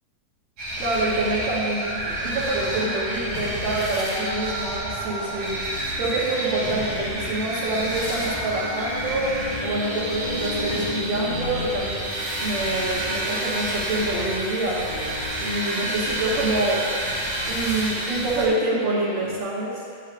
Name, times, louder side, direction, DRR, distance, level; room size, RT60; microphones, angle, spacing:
sound 1, 0.6-18.5, right 1 dB, 65° right, 2.6 m, -29 dB
voice 1, 0.8-5.6 6.0-9.3 9.6-12.1 12.4-14.9 15.4-19.9, right 2 dB, 80° right, -6 dB, 2.8 m, -26 dB
sound 2, 2.4-14.2 14.9-19.4, left 3 dB, 65° left, 1.5 m, -37 dB
sound 3, 9.6-14.6 14.9-17.0, left 2 dB, 85° left, 1.4 m, -40 dB
10.5 x 8.3 x 2.6 m, 2.2 s
omnidirectional pair, 3.8 m